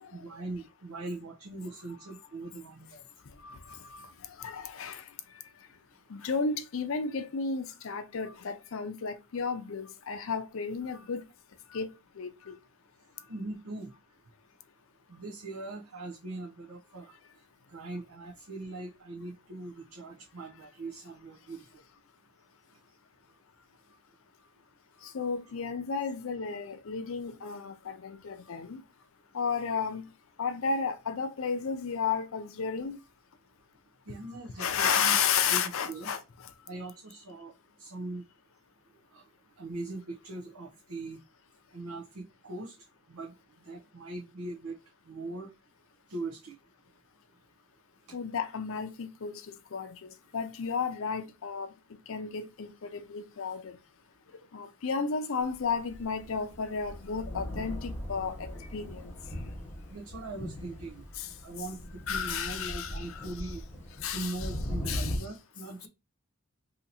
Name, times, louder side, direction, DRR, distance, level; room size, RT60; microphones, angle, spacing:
voice 1, 0.1-3.0 13.3-13.9 15.1-17.2 17.7-21.8 34.1-35.1 35.5-35.6 35.9-36.1 36.6-37.5 37.8-38.2 39.1-39.2 39.6-41.2 41.7-42.7 43.1-43.3 43.6-44.7 45.1-45.5 46.1-46.5 59.9-61.0 61.4-63.6 64.1-65.9, right 2 dB, 75° right, 0.7 m, -41 dB
voice 2, 3.4-4.1 4.4-5.0 6.1-11.2 11.7-11.9 12.2-12.6 25.0-28.8 29.3-30.0 30.4-33.0 34.6-36.5 48.1-49.4 49.7-51.7 52.1-53.8 54.5-59.1 61.2-61.3 62.1-63.3 64.0-64.5 64.9-65.3, left 6 dB, 65° left, 0.5 m, -33 dB
Thunder, 55.7-65.2, left 1 dB, 10° left, 1.2 m, -39 dB
2.8 x 2.7 x 4.1 m
head